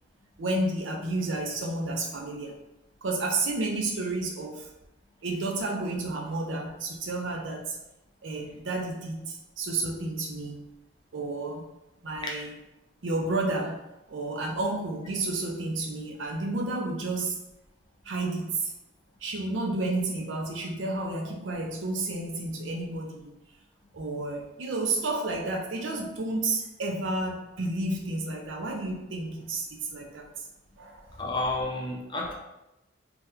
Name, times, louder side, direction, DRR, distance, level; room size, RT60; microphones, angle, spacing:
voice 1, 0.4-2.6 3.0-4.7 5.2-7.8 8.2-10.6 11.1-11.7 12.0-12.5 13.0-17.4 18.1-18.7 19.2-23.3 23.9-30.3 30.8-31.0, right 2 dB, 80° right, 1 dB, 0.6 m, -31 dB
voice 2, 31.2-32.3, left 2 dB, 25° left, -1 dB, 0.5 m, -31 dB
2.8 x 2.2 x 3.6 m, 0.93 s
head